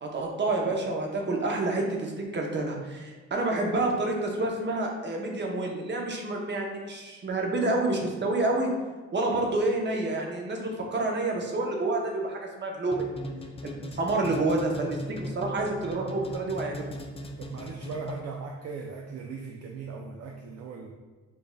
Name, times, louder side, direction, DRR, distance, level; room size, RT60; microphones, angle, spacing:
voice 1, 0.0-8.7 9.1-13.3 13.6-16.9, right 2 dB, 35° right, 0 dB, 0.8 m, -28 dB
sound 1, 12.9-18.4, equal, 20° left, 0.4 m, -39 dB
voice 2, 17.4-20.9, right 4 dB, 55° right, 1 dB, 0.5 m, -39 dB
5.2 x 2.5 x 2.2 m, 1.3 s
cardioid pair, 90°, 30 cm